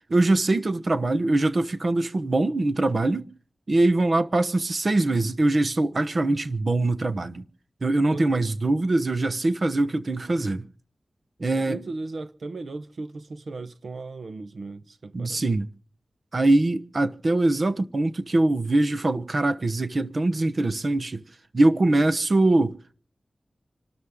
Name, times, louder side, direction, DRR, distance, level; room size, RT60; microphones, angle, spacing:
voice 1, 0.1-3.3 3.7-7.4 7.8-10.7 11.4-11.8 15.1-15.7 16.3-21.2 21.5-22.9, right 2 dB, 50° right, 1.0 m, -23 dB
voice 2, 8.1-8.5 11.5-15.4, right 3 dB, 75° right, 1.1 m, -37 dB
27.5 x 13.0 x 3.7 m
wide cardioid pair, 70°, 0 cm